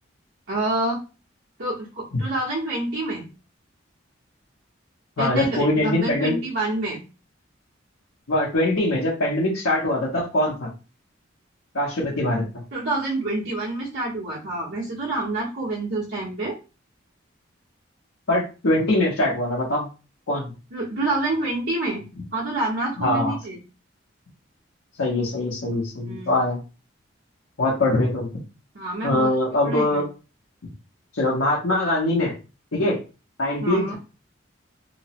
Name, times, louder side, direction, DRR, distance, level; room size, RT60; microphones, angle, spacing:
voice 1, 0.5-1.0 1.6-3.3 5.2-7.0 12.7-16.6 20.7-22.0 22.3-23.6 26.1-26.3 28.7-29.4 29.6-30.0 33.6-34.0, right 2 dB, 80° right, -7 dB, 1.0 m, -27 dB
voice 2, 5.2-6.4 8.3-10.7 11.7-12.4 18.3-19.9 20.3-20.5 23.0-23.4 25.0-26.6 27.6-28.3 29.0-30.1 31.1-32.3 32.7-33.0 33.4-34.0, left 1 dB, 90° left, -6 dB, 0.9 m, -22 dB
3.0 x 2.1 x 2.9 m, 0.32 s
head